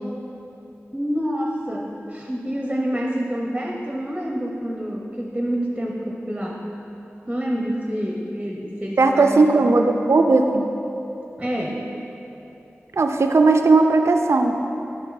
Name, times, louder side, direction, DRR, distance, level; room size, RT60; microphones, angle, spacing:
voice 1, 0.9-6.6 7.3-9.5 11.4-11.8, equal, 15° right, -1 dB, 0.8 m, -27 dB
voice 2, 9.0-10.7 12.9-14.6, right 3 dB, 70° right, 5 dB, 0.4 m, -17 dB
8.9 x 6.1 x 4.0 m, 3.0 s
wide cardioid pair, 50°, 5 cm